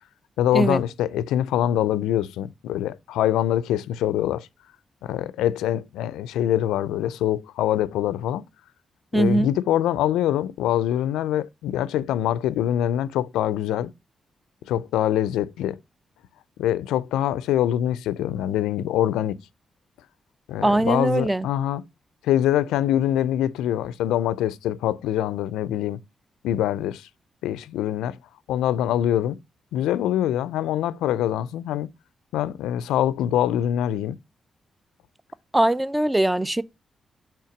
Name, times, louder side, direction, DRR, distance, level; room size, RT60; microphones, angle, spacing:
voice 1, 0.4-4.5 5.0-8.4 9.1-13.9 14.7-15.8 16.6-19.4 20.5-21.8 22.2-26.0 26.4-27.1 27.4-28.2 28.5-29.4 29.7-31.9 32.3-34.2, left 11 dB, 85° left, 0.3 m, -24 dB
voice 2, 9.1-9.5 20.6-21.5 35.5-36.6, right 1 dB, 15° right, 0.6 m, -21 dB
5.7 x 3.5 x 5.8 m
supercardioid pair, 50°, 0 cm